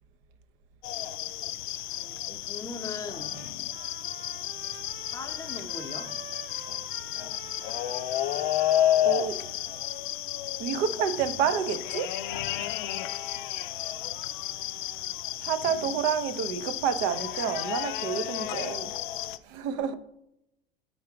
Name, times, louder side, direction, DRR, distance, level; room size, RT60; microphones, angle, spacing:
sound 1, 0.8-19.4, left 12 dB, 55° left, 0.5 m, -32 dB
voice 1, 1.9-3.4 5.1-6.2 15.3-15.5 19.5-19.9, left 4 dB, 10° left, 0.8 m, -41 dB
Trumpet, 3.0-10.1, right 5 dB, 75° right, 0.8 m, -48 dB
voice 2, 8.7-9.4 10.6-12.2 15.4-18.9 19.4-19.9, right 8 dB, 45° right, 0.6 m, -29 dB
5.6 x 4.0 x 5.8 m
figure-of-eight pair, 75°, 29 cm